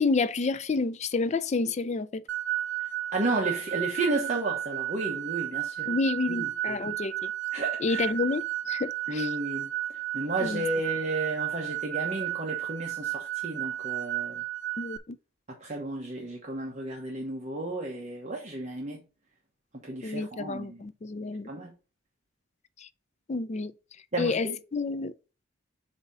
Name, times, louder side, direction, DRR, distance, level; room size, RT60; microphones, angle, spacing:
voice 1, 0.0-2.2 5.9-7.3 7.8-9.3 10.4-10.7 14.8-15.2 20.0-21.5 22.8-22.9 23.3-23.7 24.2-25.1, left 3 dB, 35° left, 0.4 m, -29 dB
sound 1, 2.3-15.0, right 13 dB, 55° right, 0.6 m, -33 dB
voice 2, 3.1-5.9 6.3-6.8 7.5-8.1 9.1-14.4 15.5-19.0 19.7-20.8 21.5-21.7 24.1-24.6, right 2 dB, 35° right, 1.0 m, -33 dB
7.9 x 2.9 x 5.4 m
head